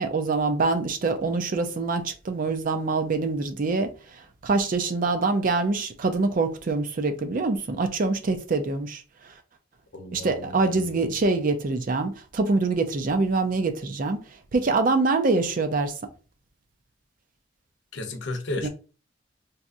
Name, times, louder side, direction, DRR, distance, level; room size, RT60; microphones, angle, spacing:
voice 1, 0.0-9.0 10.1-14.2 14.5-15.9 18.6-18.7, right 3 dB, 45° right, 0.4 m, -25 dB
voice 2, 9.9-11.2 17.9-18.7, left 2 dB, 70° left, 0.7 m, -34 dB
4.1 x 2.3 x 2.5 m
head